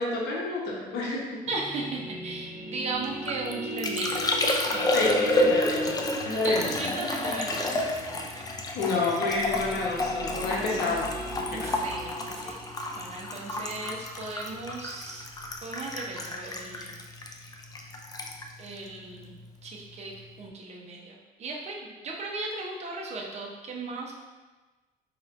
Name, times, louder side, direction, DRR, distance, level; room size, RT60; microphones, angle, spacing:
voice 1, 0.0-1.4 4.9-5.9 6.2-6.9 8.7-11.8, left 3 dB, 75° left, -3 dB, 1.0 m, -29 dB
sound 1, 1.5-15.6, equal, 5° left, 1.2 m, -39 dB
voice 2, 1.5-4.3 4.7-4.9 6.2-8.4 11.5-12.6 12.9-15.2 15.6-17.0 17.3-17.5 18.6-24.1, right 3 dB, 40° right, -1 dB, 0.8 m, -37 dB
Liquid, 3.0-19.7 19.9-20.5, left 1 dB, 20° left, 0.4 m, -30 dB
5.0 x 3.0 x 2.5 m, 1.2 s
cardioid pair, 110°, 17 cm